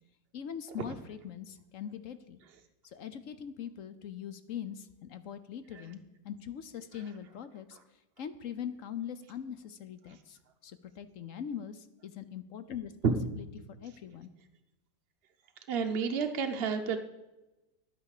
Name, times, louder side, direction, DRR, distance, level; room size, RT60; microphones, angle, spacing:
voice 1, 0.3-2.4 2.8-7.8 8.2-13.4 13.8-14.3, left 8 dB, 60° left, 11 dB, 0.9 m, -42 dB
voice 2, 15.7-17.0, right 5 dB, 50° right, 4 dB, 0.8 m, -29 dB
11.0 x 9.3 x 6.6 m, 1.0 s
omnidirectional pair, 2.0 m